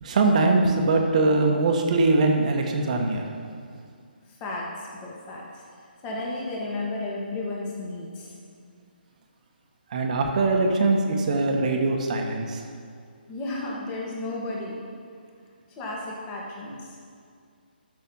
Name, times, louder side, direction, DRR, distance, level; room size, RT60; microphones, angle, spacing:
voice 1, 0.0-3.2 9.9-12.6, right 3 dB, 45° right, 2 dB, 1.3 m, -22 dB
voice 2, 4.4-5.6 6.0-8.4 13.3-14.8 15.8-16.9, left 2 dB, 20° left, -3 dB, 2.0 m, -33 dB
12.5 x 6.9 x 5.5 m, 2.2 s
figure-of-eight pair, 145°, 6 cm